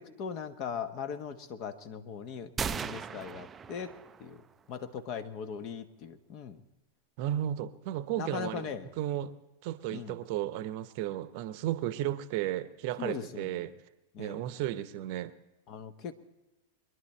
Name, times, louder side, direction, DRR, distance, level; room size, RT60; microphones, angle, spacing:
voice 1, 0.0-3.9 4.2-6.6 8.2-8.9 9.9-10.2 13.0-13.7 14.1-14.4 15.7-16.1, left 7 dB, 45° left, 1.1 m, -39 dB
sound 1, 2.6-4.5, right 6 dB, 20° right, 0.4 m, -37 dB
voice 2, 7.2-9.3 9.6-13.8 14.2-15.3, right 12 dB, 50° right, 0.7 m, -34 dB
23.0 x 11.0 x 4.4 m
hypercardioid pair, 100°, 0 cm